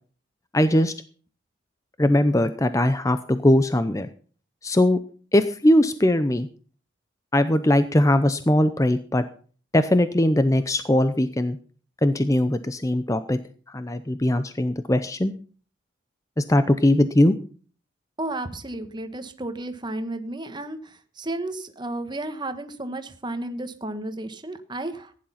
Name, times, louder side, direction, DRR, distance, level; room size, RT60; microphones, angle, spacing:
voice 1, 0.5-0.9 2.0-4.1 4.6-5.0 5.3-6.5 7.3-9.2 9.7-11.6 12.0-13.4 13.7-15.3 16.4-17.4, left 1 dB, 15° left, 11 dB, 0.6 m, -20 dB
voice 2, 18.2-25.1, right 2 dB, 20° right, 8 dB, 1.4 m, -33 dB
15.5 x 10.5 x 5.7 m, 0.43 s
head